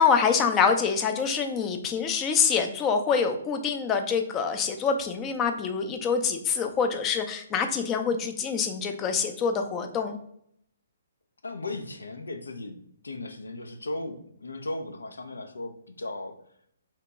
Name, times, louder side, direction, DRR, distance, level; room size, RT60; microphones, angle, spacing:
voice 1, 0.0-10.2, left 6 dB, 20° left, 6 dB, 0.4 m, -25 dB
voice 2, 11.4-16.4, left 2 dB, 85° left, 7 dB, 0.5 m, -36 dB
2.9 x 2.9 x 3.4 m, 0.69 s
hypercardioid pair, 135°, 0 cm